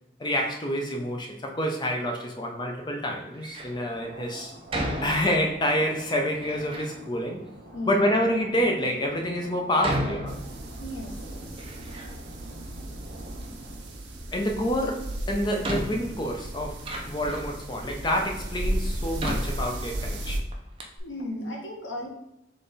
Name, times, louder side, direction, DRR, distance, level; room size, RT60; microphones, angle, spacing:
voice 1, 0.2-4.5 5.0-7.4 7.9-10.4 14.3-20.4, equal, 25° left, 2 dB, 0.5 m, -28 dB
Door, 3.3-3.8 4.7-5.7 6.3-7.0 7.7-7.8 8.5-8.6 9.8-11.0 11.3-12.4 12.6-13.5 14.8-14.9 15.6-17.6 18.2-18.3 19.2-20.3 20.5-20.6 20.8-21.0, right 1 dB, 30° right, 0.6 m, -34 dB
sound 1, 3.7-13.9, right 1 dB, 45° right, 1.0 m, -46 dB
voice 2, 7.7-8.8 10.8-11.7 21.0-22.1, left 1 dB, 85° left, 0 dB, 1.1 m, -36 dB
sound 2, 10.3-20.4, right 1 dB, 65° right, 0.7 m, -35 dB
3.7 x 3.4 x 4.0 m, 0.84 s
head